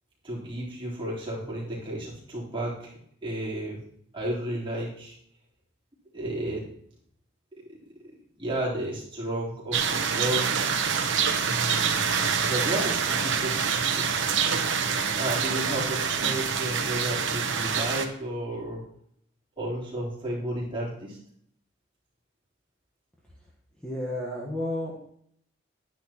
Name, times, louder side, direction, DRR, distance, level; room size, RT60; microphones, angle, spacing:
voice 1, 0.2-2.9 3.2-3.8 4.1-5.2 6.1-6.7 7.6-7.8 8.4-10.7 11.3-18.8 19.6-21.2, right 1 dB, 25° right, -7 dB, 3.8 m, -33 dB
sound 1, 9.7-18.1, right 6 dB, 65° right, 1.0 m, -26 dB
voice 2, 23.8-25.1, left 1 dB, 5° left, -4 dB, 1.3 m, -32 dB
11.0 x 10.0 x 3.0 m, 0.68 s
head